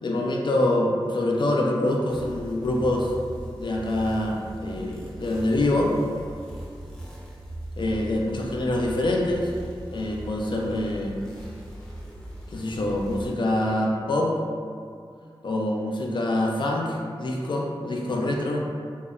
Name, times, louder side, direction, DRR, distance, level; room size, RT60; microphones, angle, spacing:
voice 1, 0.0-3.1 3.6-5.9 7.8-9.5 9.9-11.2 12.5-14.3 15.4-18.6, left 1 dB, 55° left, -1 dB, 0.4 m, -25 dB
sound 1, 2.1-13.3, right 1 dB, 5° left, 0.6 m, -39 dB
2.7 x 2.0 x 2.3 m, 2.2 s
cardioid pair, 50°, 9 cm